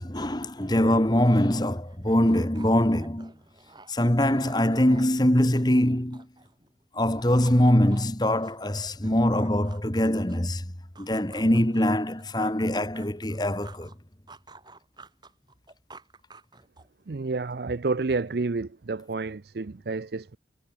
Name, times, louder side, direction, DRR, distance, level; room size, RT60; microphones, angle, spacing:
voice 1, 0.0-3.3 3.9-6.3 6.9-10.7 11.0-13.9, left 1 dB, 20° left, 1.8 m, -23 dB
sound 1, 0.9-1.0 1.2-6.7 7.0-10.5 11.0-14.0 14.3-17.0, right 3 dB, 25° right, 5.5 m, -51 dB
voice 2, 17.1-20.4, right 3 dB, 60° right, 0.6 m, -29 dB
head